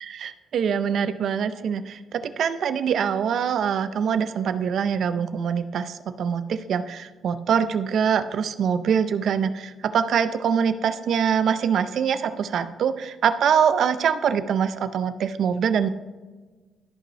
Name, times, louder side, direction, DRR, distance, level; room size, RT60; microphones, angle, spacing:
voice 1, 0.2-15.9, right 7 dB, 55° right, 12 dB, 0.5 m, -24 dB
13.5 x 5.2 x 3.2 m, 1.3 s
cardioid pair, 145°, 0 cm